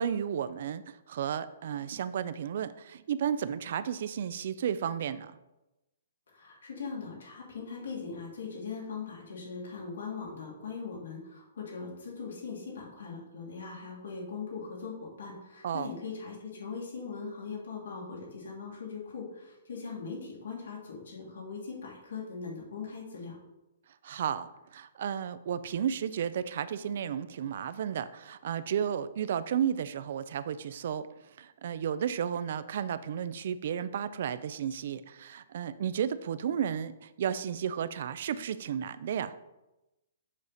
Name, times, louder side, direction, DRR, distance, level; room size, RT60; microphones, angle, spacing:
voice 1, 0.0-5.4 15.6-15.9 24.0-31.1 31.4-39.3, right 8 dB, 45° right, 14 dB, 0.4 m, -33 dB
voice 2, 6.3-23.4, left 5 dB, 85° left, -3 dB, 2.6 m, -40 dB
7.1 x 4.2 x 6.4 m, 0.98 s
hypercardioid pair, 175°, 0 cm